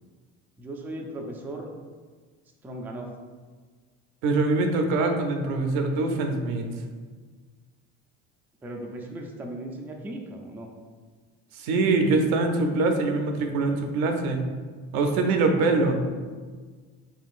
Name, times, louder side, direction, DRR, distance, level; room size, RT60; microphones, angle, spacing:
voice 1, 0.6-1.7 2.6-3.1 8.6-10.7, right 1 dB, 5° right, 1 dB, 0.3 m, -37 dB
voice 2, 4.2-6.7 11.5-14.4 14.9-16.0, right 3 dB, 75° right, 4 dB, 0.6 m, -23 dB
3.7 x 2.9 x 2.5 m, 1.5 s
supercardioid pair, 85°, 36 cm